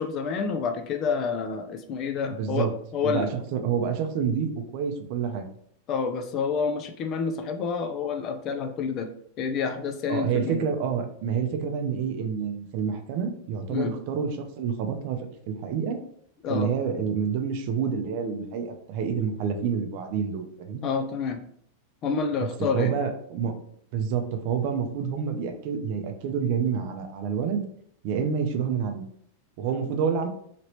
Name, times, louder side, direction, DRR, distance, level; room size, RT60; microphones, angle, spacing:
voice 1, 0.0-3.3 5.9-9.1 9.4-10.6 13.7-13.9 16.4-16.7 20.8-21.4 22.0-23.0, left 5 dB, 35° left, 7 dB, 0.4 m, -28 dB
voice 2, 2.3-2.7 3.0-5.5 10.1-15.2 15.5-16.0 16.5-20.9 22.4-22.5 22.7-23.5 23.9-27.6 28.0-29.0 29.6-30.3, right 7 dB, 50° right, 6 dB, 0.5 m, -28 dB
2.9 x 2.8 x 3.0 m, 0.65 s
supercardioid pair, 150°, 0 cm